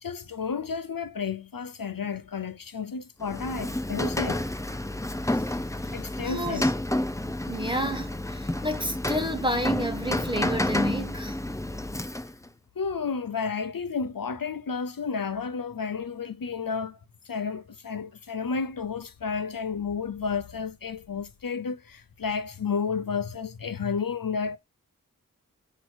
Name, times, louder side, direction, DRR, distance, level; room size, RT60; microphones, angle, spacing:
voice 1, 0.0-4.4 5.9-6.7 12.8-17.0 17.3-24.6, left 5 dB, 85° left, 0.7 m, -31 dB
Rain, 3.2-12.5, left 1 dB, 10° left, 0.5 m, -30 dB
voice 2, 6.2-6.7 7.5-11.3, equal, 15° right, 1.2 m, -30 dB
8.4 x 3.1 x 4.5 m
wide cardioid pair, 40°, 33 cm